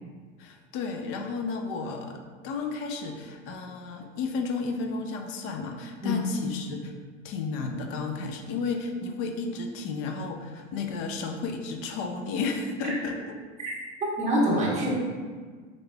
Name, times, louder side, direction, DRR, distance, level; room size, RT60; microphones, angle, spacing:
voice 1, 0.4-6.9 7.2-13.2, left 4 dB, 35° left, 4 dB, 0.4 m, -33 dB
voice 2, 13.6-15.0, equal, 20° right, -5 dB, 0.9 m, -26 dB
4.0 x 3.1 x 2.2 m, 1.5 s
hypercardioid pair, 95°, 38 cm